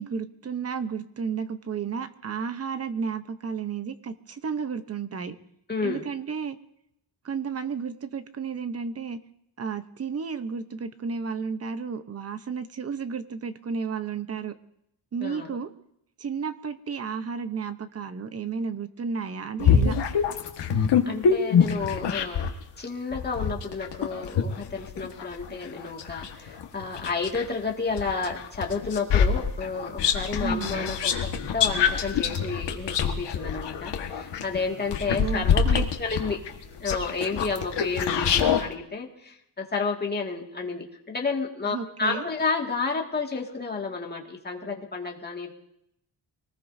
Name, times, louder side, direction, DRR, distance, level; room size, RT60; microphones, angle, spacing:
voice 1, 0.0-5.4 5.8-6.6 7.2-9.2 9.6-14.5 15.1-15.7 16.2-20.0 30.4-30.9 35.1-35.9 41.7-42.3, right 6 dB, 35° right, 10 dB, 0.9 m, -32 dB
voice 2, 5.7-6.1 15.2-15.6 21.1-22.5 22.8-36.4 36.8-45.5, left 4 dB, 25° left, 0 dB, 2.0 m, -31 dB
sound 1, 19.6-22.6 23.1-27.5 28.0-38.6, left 7 dB, 80° left, 1.6 m, -25 dB
24.5 x 19.0 x 2.7 m, 0.76 s
wide cardioid pair, 170°, 41 cm